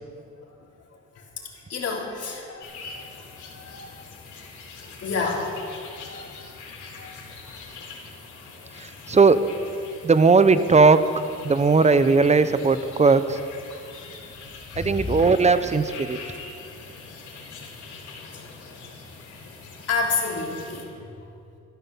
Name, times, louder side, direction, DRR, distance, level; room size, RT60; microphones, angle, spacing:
voice 1, 1.1-4.0 5.0-6.3 7.0-7.1 7.4-7.5 8.6-8.7 14.2-14.3 14.7-14.9 15.2-15.3 18.3-18.4 19.9-20.9, left 4 dB, 55° left, -2 dB, 3.3 m, -31 dB
sound 1, 2.6-20.8, left 4 dB, 80° left, 3.6 m, -43 dB
voice 2, 8.8-9.4 10.0-11.1 11.4-13.4 14.8-16.2, right 4 dB, 25° right, 13 dB, 0.7 m, -18 dB
14.0 x 11.0 x 7.2 m, 2.5 s
cardioid pair, 90°, 30 cm